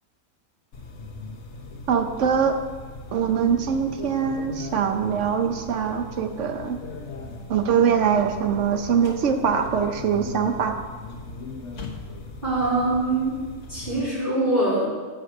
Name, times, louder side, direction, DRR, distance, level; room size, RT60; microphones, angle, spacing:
sound 1, 0.7-14.0, left 3 dB, 55° left, 1.5 m, -39 dB
voice 1, 1.9-2.5 3.1-6.8 7.5-10.8, right 7 dB, 60° right, 7 dB, 1.0 m, -23 dB
voice 2, 12.4-13.4 13.7-14.9, right 2 dB, 35° right, -11 dB, 3.0 m, -23 dB
7.9 x 6.3 x 6.4 m, 1.5 s
omnidirectional pair, 1.5 m